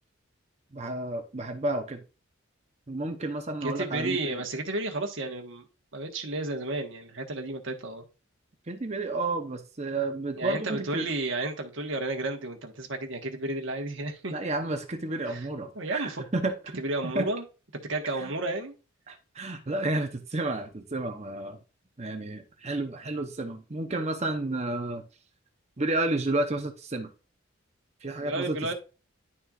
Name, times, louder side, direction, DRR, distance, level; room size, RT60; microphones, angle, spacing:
voice 1, 0.7-2.0 2.9-4.4 8.7-11.1 14.3-16.8 17.1-17.3 18.1-18.3 19.1-21.6 22.0-25.0 25.8-27.1 28.0-28.7, right 2 dB, 30° right, 0.8 m, -31 dB
voice 2, 3.6-5.6 5.9-8.0 10.4-14.3 15.3-15.5 15.7-16.2 16.8-17.4 17.7-18.7 28.2-28.7, right 2 dB, 65° right, 1.4 m, -32 dB
11.0 x 4.3 x 2.4 m
head